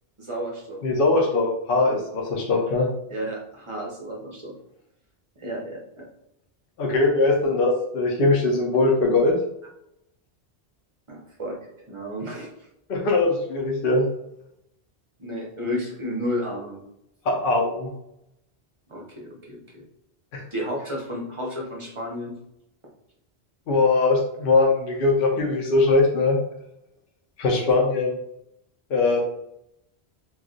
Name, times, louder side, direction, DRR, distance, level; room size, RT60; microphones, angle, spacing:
voice 1, 0.2-0.9 3.1-4.5 5.4-6.1 11.1-11.6 11.9-12.7 15.2-16.8 18.9-19.8 20.5-22.4, equal, 35° right, -2 dB, 0.6 m, -32 dB
voice 2, 0.8-2.9 6.8-9.3 12.9-14.1 17.3-17.9 20.3-20.4 23.7-26.4 27.4-28.1 28.9-29.2, left 3 dB, 65° left, 0 dB, 0.7 m, -21 dB
2.4 x 2.2 x 3.7 m, 0.80 s
omnidirectional pair, 1.1 m